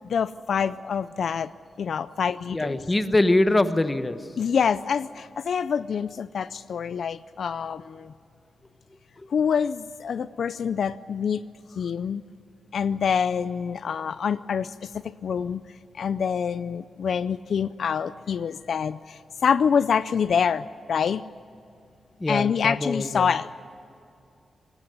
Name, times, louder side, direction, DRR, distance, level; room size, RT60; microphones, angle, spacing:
voice 1, 0.1-1.5 1.8-2.8 4.4-8.1 9.3-11.4 11.8-12.2 12.7-15.6 15.9-21.2 22.3-23.5, left 7 dB, 75° left, 15 dB, 0.4 m, -26 dB
voice 2, 2.5-4.2 22.2-23.3, left 2 dB, 20° left, 11 dB, 1.1 m, -23 dB
21.0 x 17.5 x 9.4 m, 2.6 s
wide cardioid pair, 110°, 0 cm